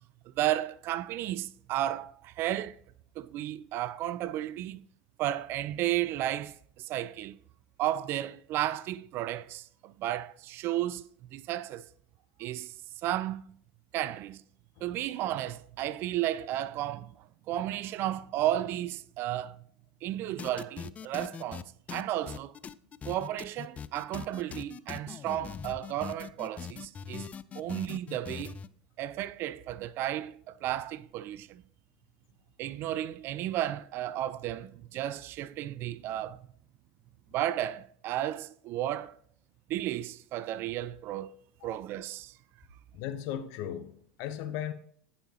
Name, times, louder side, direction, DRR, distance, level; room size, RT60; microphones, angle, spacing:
voice 1, 0.4-2.8 3.2-4.8 5.2-7.4 7.8-11.8 12.4-12.7 13.0-13.5 13.9-14.4 14.8-17.1 17.5-19.6 20.0-22.5 23.0-27.3 27.5-28.6 29.0-31.6 32.6-36.4 37.3-39.2 39.7-41.3 41.6-42.3, right 13 dB, 50° right, 0.4 m, -33 dB
sound 1, 20.4-21.6 21.9-28.7, left 7 dB, 30° left, 0.3 m, -41 dB
voice 2, 42.9-44.7, left 10 dB, 60° left, 0.9 m, -37 dB
10.0 x 5.5 x 2.9 m
hypercardioid pair, 85°, 5 cm